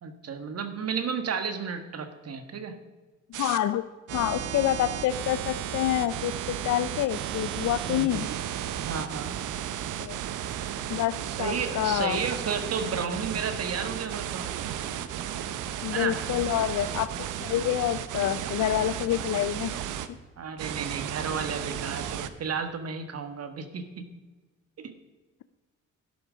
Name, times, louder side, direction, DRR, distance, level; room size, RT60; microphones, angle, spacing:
voice 1, 0.0-2.7 7.9-8.4 8.8-9.4 11.4-14.5 15.9-16.2 20.4-24.1 24.8-24.9, right 6 dB, 55° right, 8 dB, 1.6 m, -33 dB
sound 1, 3.3-3.6 4.1-20.1 20.6-22.3, right 10 dB, 80° right, 0.9 m, -34 dB
voice 2, 3.4-3.9 4.1-8.3 10.0-10.2 10.9-12.2 15.8-19.7, left 12 dB, 70° left, 12 dB, 0.5 m, -27 dB
12.0 x 11.5 x 5.1 m, 1.3 s
cardioid pair, 90°, 30 cm